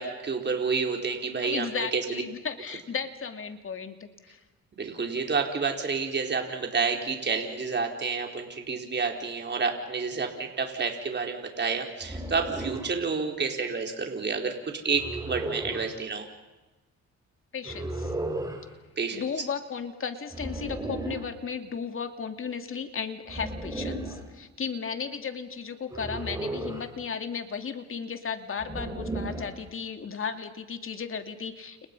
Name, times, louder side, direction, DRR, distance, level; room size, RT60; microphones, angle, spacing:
voice 1, 0.0-2.2 4.8-14.6 14.8-16.3 19.0-19.2, right 5 dB, 35° right, 2 dB, 4.6 m, -29 dB
voice 2, 1.4-4.4 17.5-18.1 19.1-31.9, left 6 dB, 45° left, 7 dB, 2.7 m, -35 dB
sound 1, 12.0-13.0 14.9-15.9 17.6-18.6 20.3-21.3 23.3-24.3 25.9-26.9 28.6-29.6, right 2 dB, 10° right, 5.6 m, -34 dB
30.0 x 30.0 x 5.6 m, 1.1 s
cardioid pair, 90°, 30 cm